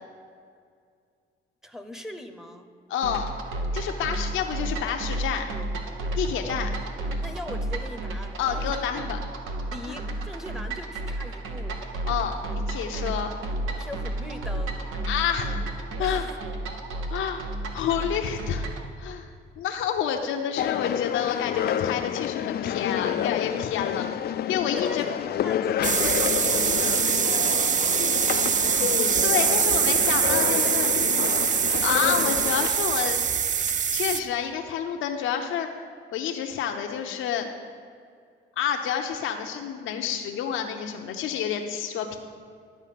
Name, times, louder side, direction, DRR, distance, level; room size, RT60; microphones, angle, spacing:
voice 1, 1.6-2.7 7.2-9.1 9.7-11.8 13.8-14.8 16.0-16.4 24.7-27.9, left 1 dB, ahead, 6 dB, 0.9 m, -40 dB
voice 2, 2.9-3.3 3.7-5.4 6.2-6.7 8.4-9.2 9.9-10.0 12.1-12.3 12.7-13.3 15.1-15.5 16.0-16.2 17.1-17.4 17.7-18.7 19.0-19.3 19.6-24.1 24.5-25.1 29.2-30.9 31.8-33.3 33.9-35.7 36.1-37.5 38.6-42.2, left 8 dB, 80° left, 3 dB, 0.7 m, -28 dB
sound 1, 3.0-18.9, right 2 dB, 90° right, 1.0 m, -32 dB
sound 2, 20.6-32.7, left 10 dB, 55° left, 0.4 m, -29 dB
sound 3, 25.8-34.2, right 7 dB, 40° right, 0.5 m, -23 dB
11.0 x 5.0 x 8.3 m, 2.2 s
cardioid pair, 90°, 20 cm